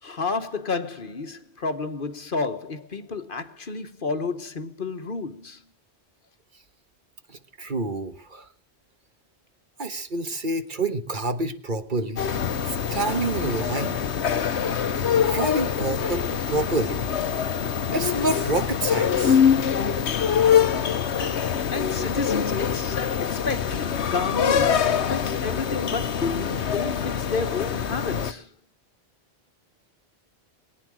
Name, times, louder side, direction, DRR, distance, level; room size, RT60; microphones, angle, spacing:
voice 1, 0.0-5.6 21.2-28.5, left 4 dB, 50° left, 1.4 m, -31 dB
voice 2, 7.3-8.5 9.8-12.2 12.9-14.0 15.2-17.0 17.9-19.4, right 2 dB, 50° right, 1.4 m, -28 dB
sound 1, 12.2-28.3, left 8 dB, 85° left, 1.2 m, -24 dB
22.0 x 9.9 x 6.2 m
omnidirectional pair, 1.1 m